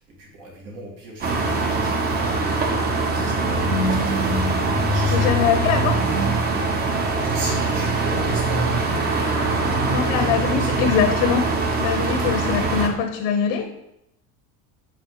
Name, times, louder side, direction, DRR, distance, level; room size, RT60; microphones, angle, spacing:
voice 1, 0.0-4.1 4.8-5.3 6.8-11.2, right 2 dB, 70° right, -3 dB, 2.3 m, -37 dB
sound 1, 1.2-12.9, right 2 dB, 25° right, 0.7 m, -22 dB
voice 2, 5.1-6.0 9.9-11.4 11.8-13.6, left 7 dB, 85° left, 3 dB, 0.9 m, -22 dB
6.1 x 4.7 x 3.8 m, 0.81 s
cardioid pair, 150°, 38 cm